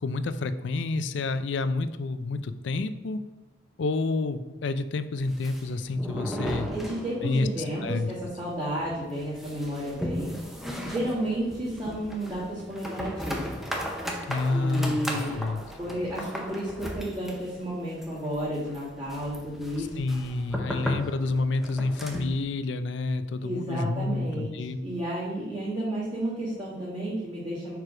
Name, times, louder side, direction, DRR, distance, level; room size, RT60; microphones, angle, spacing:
voice 1, 0.0-3.2 3.8-6.7 7.2-7.5 7.8-8.1 14.3-15.6 19.8-24.8, left 3 dB, 70° left, 12 dB, 0.4 m, -29 dB
sound 1, 5.2-7.6 7.8-7.9 8.2-8.3 8.8-22.4, equal, ahead, 0.6 m, -36 dB
voice 2, 6.7-10.5 10.8-13.6 14.5-15.4 15.8-20.0 23.4-24.5 24.8-27.8, right 1 dB, 25° right, -10 dB, 1.8 m, -32 dB
4.7 x 4.6 x 4.9 m, 1.2 s
head